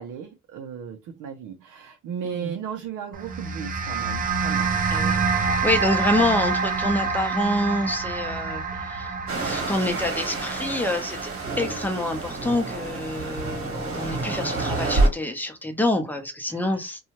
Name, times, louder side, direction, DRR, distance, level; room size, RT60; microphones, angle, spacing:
voice 1, 0.0-4.7 5.0-5.1 5.4-5.6 16.5-16.9, right 7 dB, 80° right, 0.6 m, -36 dB
sound 1, 3.1-13.7, right 5 dB, 30° right, 0.4 m, -28 dB
voice 2, 5.5-9.1 9.4-11.3 11.6-17.0, left 1 dB, 5° left, 0.7 m, -27 dB
sound 2, 9.3-15.1, right 2 dB, 50° right, 1.2 m, -28 dB
2.7 x 2.3 x 2.9 m
cardioid pair, 90°, 30 cm